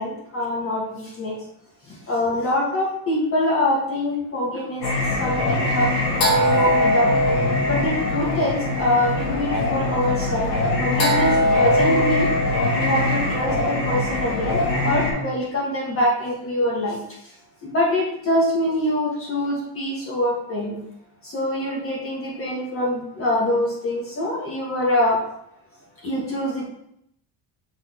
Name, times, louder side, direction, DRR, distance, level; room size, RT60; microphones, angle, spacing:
voice 1, 0.0-1.4 1.8-7.2 7.6-10.5 10.8-12.3 12.7-17.0 17.6-20.8 21.2-25.2 26.0-26.7, left 1 dB, 30° left, -4 dB, 1.9 m, -24 dB
Singing, 4.8-15.1, left 1 dB, 65° left, 2.3 m, -21 dB
6.3 x 4.3 x 3.8 m, 0.72 s
cardioid pair, 135°, 43 cm